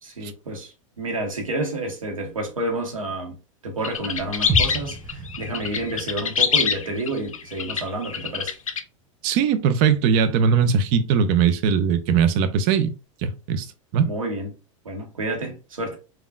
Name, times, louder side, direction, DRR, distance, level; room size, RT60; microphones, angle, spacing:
voice 1, 0.0-3.4 3.6-8.5 14.0-14.5 14.8-16.0, right 2 dB, 85° right, 0.9 m, -30 dB
sound 1, 3.8-8.8, left 6 dB, 85° left, 0.4 m, -25 dB
sound 2, 4.5-8.4 8.7-8.8, right 1 dB, 10° right, 0.6 m, -32 dB
voice 2, 9.2-12.9 13.2-13.7 13.9-14.1, right 6 dB, 50° right, 0.5 m, -20 dB
3.5 x 2.3 x 2.3 m
hypercardioid pair, 90°, 17 cm